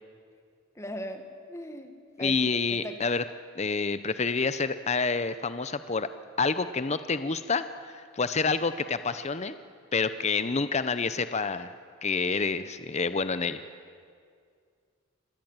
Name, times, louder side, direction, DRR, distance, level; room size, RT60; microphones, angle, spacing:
voice 1, 0.8-2.4 2.7-3.2, equal, 15° left, 6 dB, 1.7 m, -39 dB
voice 2, 2.2-3.2 3.6-6.1 6.4-9.5 9.9-11.7 12.0-13.6, left 4 dB, 30° left, 12 dB, 0.7 m, -28 dB
26.0 x 18.5 x 8.9 m, 2.2 s
head